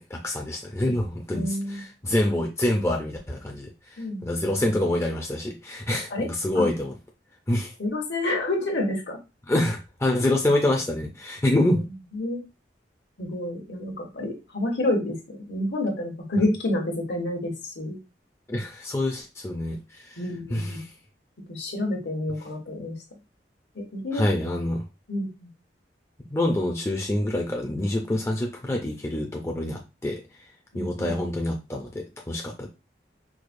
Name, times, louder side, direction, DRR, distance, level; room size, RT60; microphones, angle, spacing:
voice 1, 0.0-3.7 4.2-6.9 7.5-7.7 9.5-11.9 18.5-20.2 20.5-20.7 24.1-24.8 26.3-30.2 30.7-32.7, left 1 dB, 15° left, 0.4 m, -26 dB
voice 2, 1.3-1.8 4.0-4.3 4.5-4.6 6.1-6.3 6.5-6.7 7.8-9.2 11.8-12.4 13.2-18.0 20.2-20.9 21.5-23.0 23.7-24.3 25.1-25.5 30.7-31.2, left 1 dB, 70° left, 1.0 m, -29 dB
4.7 x 2.1 x 2.5 m
head